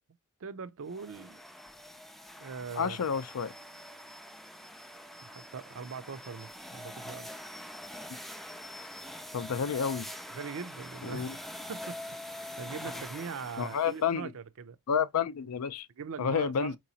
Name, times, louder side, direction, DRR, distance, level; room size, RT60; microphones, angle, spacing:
voice 1, 0.4-1.4 2.4-3.0 5.2-7.3 10.3-11.4 11.7-14.8 16.0-16.8, right 5 dB, 65° right, 0.5 m, -41 dB
sound 1, 0.9-14.1, left 1 dB, ahead, 0.3 m, -45 dB
voice 2, 2.8-3.5 9.3-10.1 11.0-11.4 13.6-14.3 14.9-15.9 16.2-16.7, left 7 dB, 75° left, 0.4 m, -30 dB
4.7 x 3.0 x 2.7 m
head